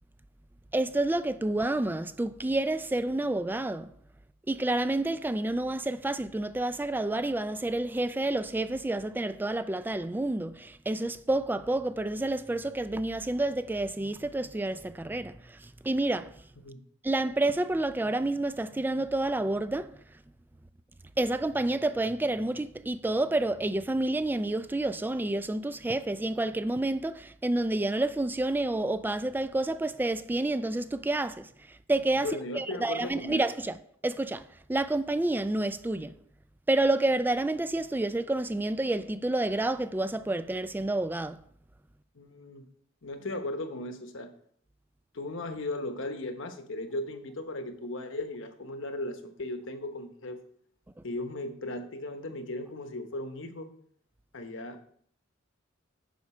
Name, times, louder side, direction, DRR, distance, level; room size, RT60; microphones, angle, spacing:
voice 1, 0.7-3.9 4.5-16.3 17.0-19.9 21.2-32.3 32.5-33.8 34.0-36.1 36.7-41.4, right 2 dB, 10° right, 0.3 m, -29 dB
voice 2, 32.2-33.4 42.1-42.6 43.0-44.3 45.1-50.4 51.0-53.7 54.3-54.8, left 1 dB, 65° left, 1.0 m, -37 dB
9.4 x 6.0 x 4.3 m
head